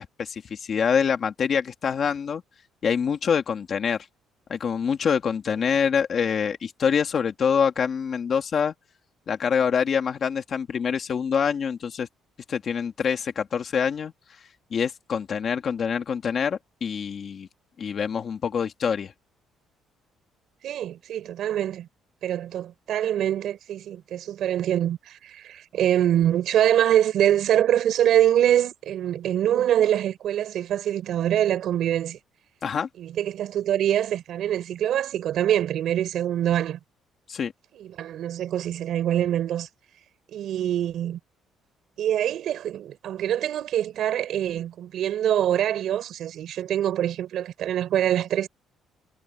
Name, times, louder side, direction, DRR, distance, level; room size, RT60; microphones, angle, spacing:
voice 1, 0.0-2.4 2.8-4.0 4.5-8.7 9.3-12.1 12.5-14.1 14.7-17.5 17.8-19.1 32.6-32.9 37.3-37.5, left 7 dB, 35° left, 1.9 m, -25 dB
voice 2, 20.6-21.9 22.2-32.2 33.0-36.8 37.8-39.7 40.3-41.2 42.0-48.5, right 11 dB, 55° right, 3.9 m, -24 dB
cardioid pair, 165°, 0 cm